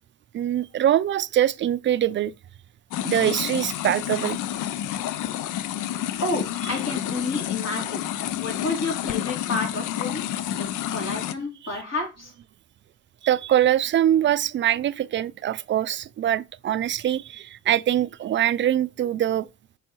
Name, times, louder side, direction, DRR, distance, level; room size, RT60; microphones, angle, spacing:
voice 1, 0.3-2.3 3.0-4.4 13.2-19.5, right 11 dB, 40° right, 0.4 m, -23 dB
sound 1, 2.9-11.3, left 11 dB, 85° left, 0.5 m, -29 dB
voice 2, 6.2-8.1 8.4-10.2 10.5-12.3, left 2 dB, 60° left, 3.4 m, -30 dB
5.4 x 4.8 x 4.4 m
cardioid pair, 90°, 30 cm